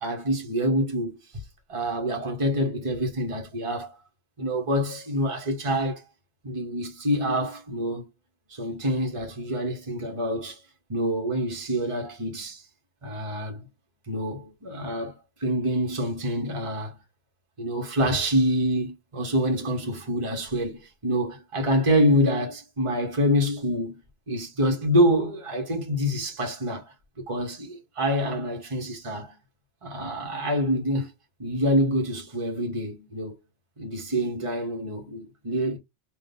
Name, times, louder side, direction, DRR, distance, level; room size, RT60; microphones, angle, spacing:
voice 1, 0.0-1.2 1.7-4.0 4.4-6.0 6.4-8.1 8.5-10.6 10.9-12.6 13.0-13.7 14.1-17.0 17.6-24.0 24.3-26.9 27.3-29.4 29.8-31.1 31.4-33.4 33.8-35.8, equal, 30° right, 1.1 m, -26 dB
4.1 x 2.6 x 3.3 m
omnidirectional pair, 1.1 m